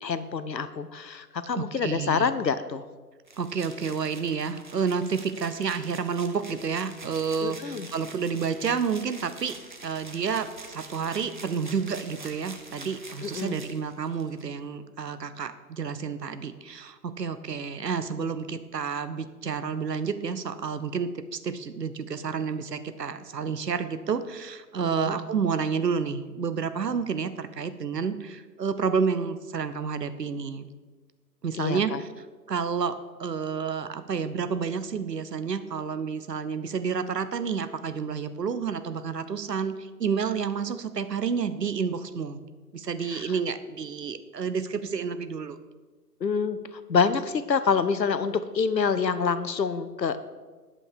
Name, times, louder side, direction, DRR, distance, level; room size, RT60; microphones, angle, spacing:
voice 1, 0.0-2.8 7.4-7.9 13.2-13.6 24.8-25.2 31.6-32.0 43.1-43.3 46.2-50.2, left 5 dB, 80° left, 13 dB, 0.8 m, -27 dB
voice 2, 1.5-2.3 3.4-30.7 31.4-42.4 42.7-45.6, right 6 dB, 75° right, 12 dB, 0.8 m, -30 dB
sound 1, 3.2-14.4, right 3 dB, 30° right, 0.5 m, -46 dB
8.8 x 5.4 x 6.4 m, 1.4 s
figure-of-eight pair, 135°, 50 cm